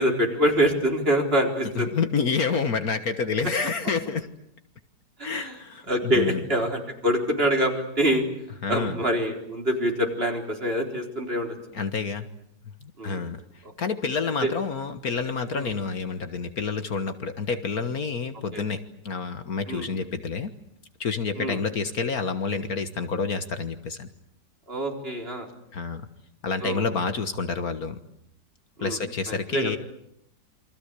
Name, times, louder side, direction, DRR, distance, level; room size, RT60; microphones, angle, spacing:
voice 1, 0.0-1.9 5.2-5.5 5.9-8.2 8.7-11.5 13.0-13.2 14.4-14.5 15.5-15.7 18.5-18.6 19.7-19.9 21.4-21.6 24.7-25.5 26.6-26.9 28.8-29.0 29.3-29.7, equal, 35° right, 2 dB, 4.4 m, -25 dB
voice 2, 1.7-4.3 5.2-6.4 8.6-9.0 11.7-12.3 12.8-20.5 21.0-24.1 25.7-26.1 26.4-28.0 28.8-29.8, left 5 dB, 60° left, 10 dB, 1.8 m, -28 dB
28.5 x 24.0 x 8.3 m, 0.74 s
omnidirectional pair, 1.8 m